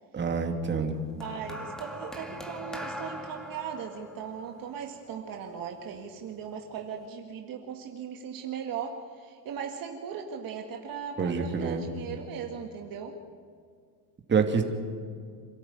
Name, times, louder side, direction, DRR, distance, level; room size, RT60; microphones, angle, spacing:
voice 1, 0.1-1.0 11.2-11.8 14.3-14.6, right 5 dB, 25° right, 3 dB, 2.5 m, -26 dB
sound 1, 1.2-5.6 6.6-6.8, equal, ahead, 2.1 m, -41 dB
voice 2, 1.2-13.2, right 7 dB, 45° right, 3 dB, 1.9 m, -38 dB
27.0 x 13.0 x 9.2 m, 2.2 s
cardioid pair, 130°, 45 cm